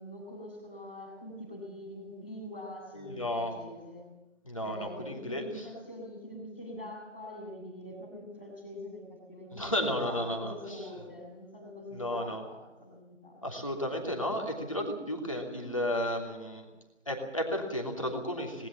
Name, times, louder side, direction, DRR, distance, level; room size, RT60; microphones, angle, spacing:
voice 1, 0.0-4.1 4.6-13.4, left 1 dB, 10° left, -11 dB, 2.7 m, -44 dB
voice 2, 2.9-3.6 4.4-5.7 9.5-10.9 11.9-12.5 13.4-16.7 17.1-18.7, equal, 25° left, 2 dB, 3.0 m, -33 dB
20.0 x 19.5 x 7.3 m, 1.1 s
figure-of-eight pair, 175°, 36 cm